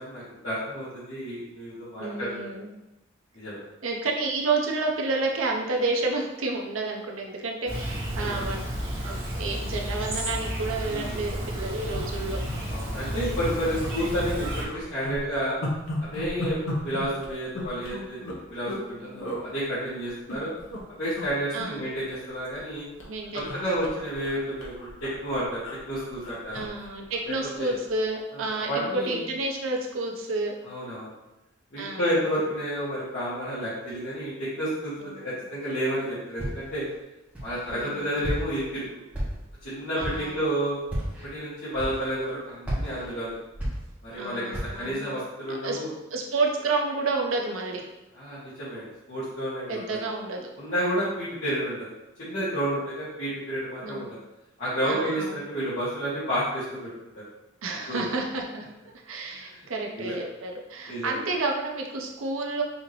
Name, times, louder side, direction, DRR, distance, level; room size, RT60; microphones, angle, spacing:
voice 1, 0.0-2.3 3.3-3.6 8.2-8.4 10.9-11.2 12.7-15.6 16.0-20.5 21.0-22.9 23.5-25.6 25.9-26.6 27.6-27.7 28.7-29.2 30.7-31.1 31.7-34.9 35.2-36.8 37.4-38.8 39.6-40.8 41.3-43.4 44.0-45.9 48.2-50.0 50.6-51.9 52.2-54.2 54.6-56.9 57.1-57.2 57.9-58.1 59.4-59.6 60.0-60.2 60.9-61.1, equal, 60° left, -13 dB, 1.6 m, -30 dB
voice 2, 2.0-2.7 3.8-8.7 9.0-12.4 19.0-19.3 20.3-20.5 21.5-21.9 23.1-23.6 24.0-24.1 26.5-30.5 31.8-32.1 35.0-35.3 37.7-38.2 40.0-40.4 44.1-45.1 45.5-45.8 46.1-47.8 49.7-50.5 53.8-54.1 54.8-55.4 57.6-58.6 58.9-62.6, right 3 dB, 85° right, 0 dB, 0.7 m, -30 dB
Chirp tweet, 7.7-14.6, equal, 25° right, 1.6 m, -32 dB
sound 1, 11.2-11.4 11.9-12.6 12.9-13.1 13.4-14.3 14.6-18.9 19.2-19.4 20.0-20.8 21.1-21.3 21.6-22.7 23.0-27.5 27.9-28.1, left 1 dB, 80° left, 0.9 m, -36 dB
Walk footsteps, 36.4-36.8 37.3-37.9 38.2-38.7 39.1-39.6 40.0-40.3 40.8-41.3 41.7-42.3 42.6-44.2 44.5-44.9, equal, 5° right, 1.2 m, -32 dB
5.6 x 2.8 x 3.0 m, 0.96 s
head